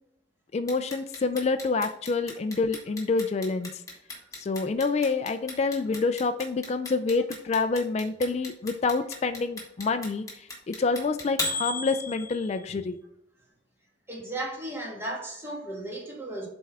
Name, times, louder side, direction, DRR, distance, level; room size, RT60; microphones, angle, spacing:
voice 1, 0.5-3.7 4.4-13.0, left 4 dB, 35° left, 0.4 m, -27 dB
Clock, 0.7-12.7, left 3 dB, 20° left, 1.5 m, -35 dB
voice 2, 14.1-16.5, right 1 dB, 15° right, 1.7 m, -35 dB
7.5 x 3.5 x 4.6 m
head